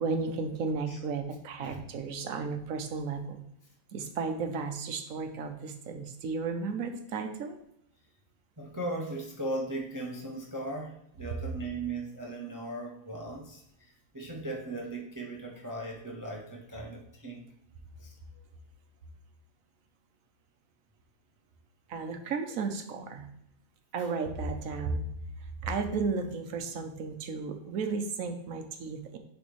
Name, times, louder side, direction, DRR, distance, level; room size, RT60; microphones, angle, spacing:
voice 1, 0.0-3.4 3.9-7.6 21.9-23.3 23.9-25.1 25.6-29.2, right 4 dB, 70° right, 6 dB, 1.2 m, -34 dB
voice 2, 8.6-17.5 18.0-18.1, right 2 dB, 15° right, -1 dB, 0.7 m, -38 dB
10.5 x 3.5 x 3.2 m, 0.75 s
omnidirectional pair, 1.5 m